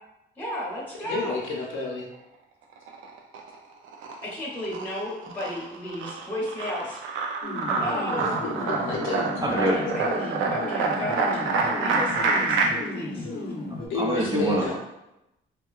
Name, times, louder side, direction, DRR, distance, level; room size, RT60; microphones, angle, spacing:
voice 1, 0.4-1.4 4.3-7.0 7.7-8.3 9.5-13.3, left 1 dB, 10° left, -5 dB, 1.0 m, -34 dB
voice 2, 1.1-2.0 8.1-9.3 13.9-14.7, left 3 dB, 85° left, -1 dB, 0.7 m, -30 dB
sound 1, 2.7-3.6 3.9-12.7, right 4 dB, 80° right, 0.4 m, -27 dB
sound 2, 7.4-13.9, left 2 dB, 50° left, 0.7 m, -34 dB
voice 3, 9.4-9.8 13.9-14.8, right 1 dB, 20° right, 0 dB, 0.5 m, -25 dB
2.8 x 2.1 x 2.3 m, 0.88 s
cardioid pair, 90°, 20 cm